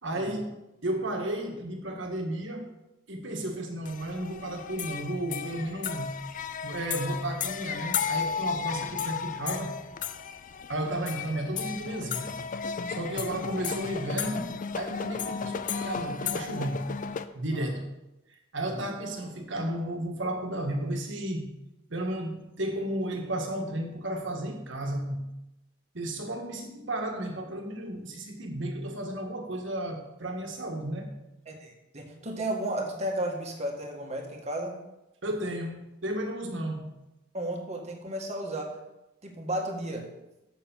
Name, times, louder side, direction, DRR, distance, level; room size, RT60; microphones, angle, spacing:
voice 1, 0.0-2.7 3.1-6.2 6.6-9.8 10.7-12.3 12.9-16.9 17.3-17.9 18.5-21.5 21.9-25.3 25.9-31.1 35.2-36.9, right 1 dB, 70° right, 3 dB, 1.7 m, -33 dB
sound 1, 3.9-17.2, left 6 dB, 45° left, 0.5 m, -34 dB
voice 2, 31.4-34.8 37.3-38.8 39.2-40.1, right 1 dB, 35° right, 1 dB, 1.7 m, -33 dB
7.1 x 6.9 x 7.2 m, 0.93 s
head